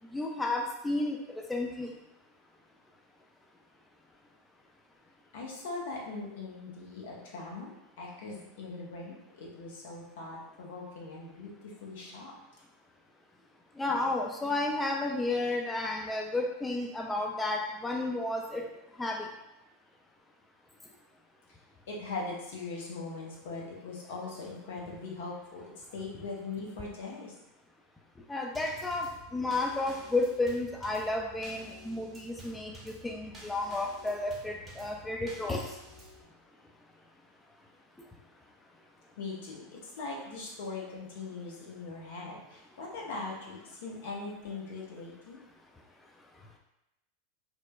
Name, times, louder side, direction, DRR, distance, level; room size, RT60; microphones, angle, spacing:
voice 1, 0.1-1.2 1.5-1.9 13.8-18.6 19.0-19.3 28.3-35.7, left 2 dB, 10° left, 0 dB, 0.3 m, -32 dB
voice 2, 5.3-12.4 14.4-14.5 21.9-27.4 39.2-45.4, left 3 dB, 70° left, -3 dB, 0.7 m, -41 dB
Drum kit / Snare drum / Bass drum, 28.5-36.2, equal, 25° right, 0.7 m, -51 dB
3.0 x 2.1 x 2.2 m, 0.90 s
hypercardioid pair, 90°, 0 cm